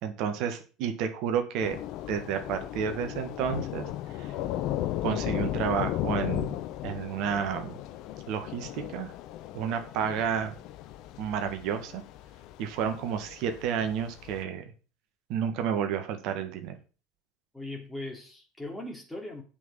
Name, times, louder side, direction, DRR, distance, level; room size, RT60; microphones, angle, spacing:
voice 1, 0.0-1.8 2.1-3.9 4.2-4.3 5.0-6.6 6.8-7.7 8.3-9.1 9.5-10.5 11.2-12.0 12.6-14.6 15.3-16.8, right 8 dB, 50° right, 7 dB, 1.7 m, -31 dB
Thunder / Rain, 1.6-14.4, left 13 dB, 50° left, 0.7 m, -36 dB
voice 2, 17.5-19.4, left 1 dB, 5° left, -1 dB, 3.1 m, -39 dB
8.3 x 5.9 x 7.5 m, 0.36 s
figure-of-eight pair, 70°, 0 cm